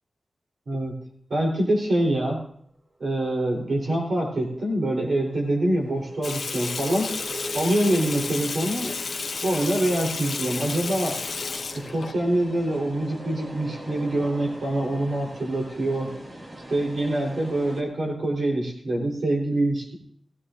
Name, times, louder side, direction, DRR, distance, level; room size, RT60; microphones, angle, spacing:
voice 1, 1.3-2.4 3.0-7.1 7.5-8.9 9.4-11.2 11.7-16.1 16.7-20.0, right 1 dB, 70° right, -2 dB, 3.6 m, -25 dB
sound 1, 3.7-17.8, right 1 dB, 50° right, 2.6 m, -42 dB
Water tap faucet / Sink (filling or washing), 6.2-12.1, left 4 dB, 75° left, 1.0 m, -32 dB
17.0 x 17.0 x 2.5 m, 0.66 s
wide cardioid pair, 105°, 0 cm